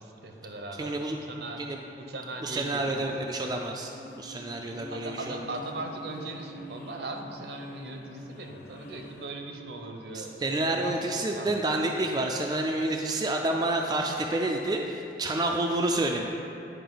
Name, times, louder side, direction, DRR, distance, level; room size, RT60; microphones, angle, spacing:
voice 1, 0.0-0.9 1.2-1.7 2.0-3.0 4.9-11.6, right 2 dB, 70° right, 3 dB, 0.7 m, -39 dB
voice 2, 0.8-1.2 1.6-1.8 2.4-5.4 10.1-16.3, right 2 dB, 20° right, 1 dB, 0.3 m, -29 dB
sound 1, 3.8-9.3, equal, 55° left, 0.7 m, -45 dB
10.0 x 4.9 x 3.9 m, 2.9 s
head